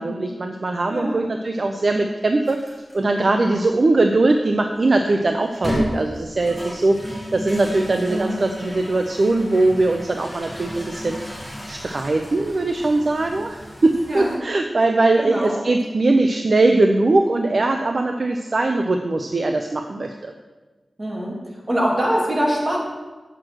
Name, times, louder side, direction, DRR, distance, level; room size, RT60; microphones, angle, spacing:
voice 1, 0.0-7.0 7.3-13.6 13.8-20.3, right 2 dB, 55° right, 4 dB, 0.6 m, -20 dB
voice 2, 0.9-1.2 8.1-8.4 14.1-14.4 15.2-15.6 21.0-21.4 21.7-22.8, equal, 35° right, -3 dB, 2.7 m, -23 dB
sound 1, 2.5-3.0 3.6-3.7 5.4-14.4, equal, 5° left, 2.1 m, -33 dB
7.5 x 6.9 x 6.2 m, 1.2 s
wide cardioid pair, 90°, 0 cm